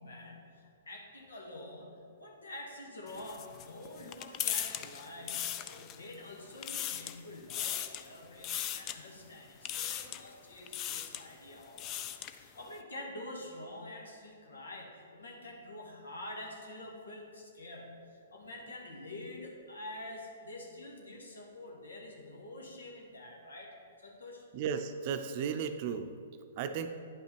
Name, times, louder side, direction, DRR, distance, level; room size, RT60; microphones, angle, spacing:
voice 1, 0.0-24.5, left 1 dB, 85° left, -1 dB, 1.8 m, -47 dB
sound 1, 3.1-6.1 6.5-7.2 7.5-8.1 8.4-9.0 9.6-10.3 10.7-11.2 11.6-12.4, left 11 dB, 30° left, 0.4 m, -37 dB
voice 2, 24.5-26.1 26.6-26.9, right 7 dB, 45° right, 8 dB, 0.6 m, -34 dB
9.8 x 5.7 x 4.5 m, 2.3 s
hypercardioid pair, 125°, 0 cm